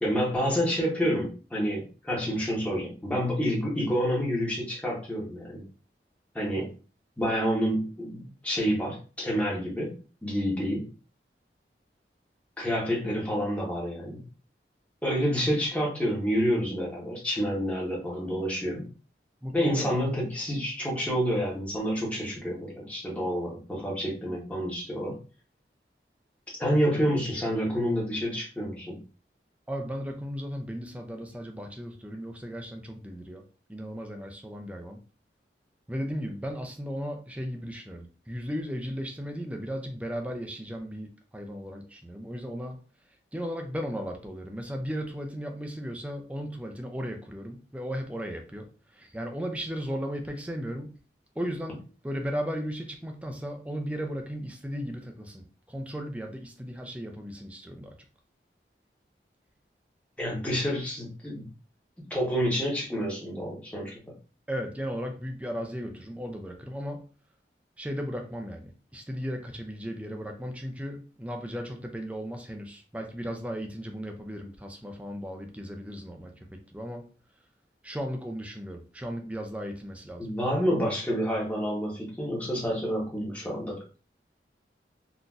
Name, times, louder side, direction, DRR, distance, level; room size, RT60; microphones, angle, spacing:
voice 1, 0.0-5.7 6.3-6.7 7.2-10.9 12.6-14.2 15.0-18.9 19.5-25.2 26.6-29.0 60.2-61.5 62.1-64.1 80.2-83.8, equal, 10° left, 0.9 m, -28 dB
voice 2, 19.4-19.9 29.7-33.4 33.7-35.0 35.9-41.1 41.3-42.8 43.3-48.7 49.0-50.9 51.4-55.4 55.7-57.9 64.5-67.0 67.8-77.1 77.8-80.3, equal, 10° right, 0.4 m, -36 dB
3.9 x 2.6 x 2.3 m
head